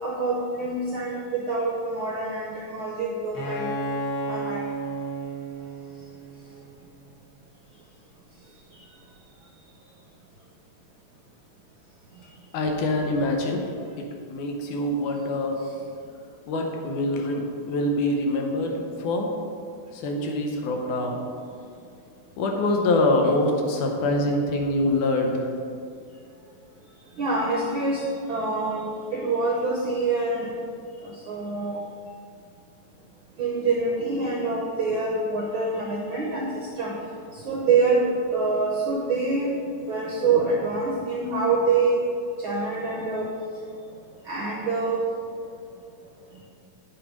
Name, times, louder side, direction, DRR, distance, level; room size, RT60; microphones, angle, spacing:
voice 1, 0.0-3.7 4.3-4.6 27.2-28.0 28.3-30.5 31.0-31.8 33.4-37.0 37.3-39.5 39.9-42.0 42.4-43.3 44.2-45.0, right 3 dB, 75° right, -2 dB, 1.2 m, -25 dB
Bowed string instrument, 3.3-7.0, right 1 dB, 55° left, 1.0 m, -32 dB
voice 2, 12.5-13.6 14.0-14.1 14.3-15.6 16.5-19.3 19.9-21.2 22.4-25.5, left 1 dB, 80° left, 2 dB, 2.6 m, -25 dB
9.0 x 6.8 x 5.3 m, 2.4 s
omnidirectional pair, 3.5 m